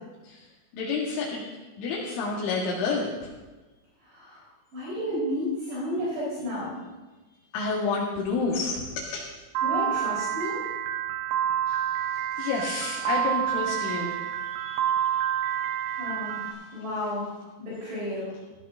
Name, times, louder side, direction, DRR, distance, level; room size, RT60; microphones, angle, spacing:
voice 1, 0.7-3.3 7.5-9.2 11.7-15.3 15.7-15.8, left 4 dB, 70° left, -5 dB, 3.9 m, -30 dB
voice 2, 4.0-6.8 9.6-10.6 15.9-18.3, left 1 dB, 55° right, -8 dB, 6.3 m, -32 dB
Piano, 9.6-16.5, right 10 dB, 80° right, 3.3 m, -28 dB
18.0 x 14.0 x 2.7 m, 1.2 s
omnidirectional pair, 6.0 m